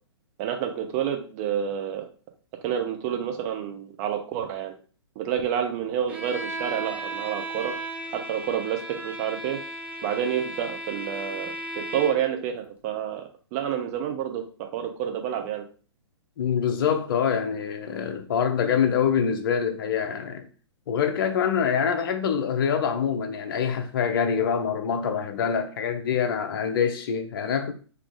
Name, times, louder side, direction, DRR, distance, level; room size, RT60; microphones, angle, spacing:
voice 1, 0.4-2.0 2.6-4.7 5.2-7.7 8.1-9.6 10.0-13.2 13.5-15.6, right 9 dB, 35° right, 0.9 m, -29 dB
Bowed string instrument, 6.1-12.4, right 1 dB, 10° right, 0.7 m, -35 dB
voice 2, 16.4-20.5 20.9-27.7, left 7 dB, 50° left, 0.8 m, -25 dB
4.1 x 3.0 x 3.7 m
figure-of-eight pair, 125°, 15 cm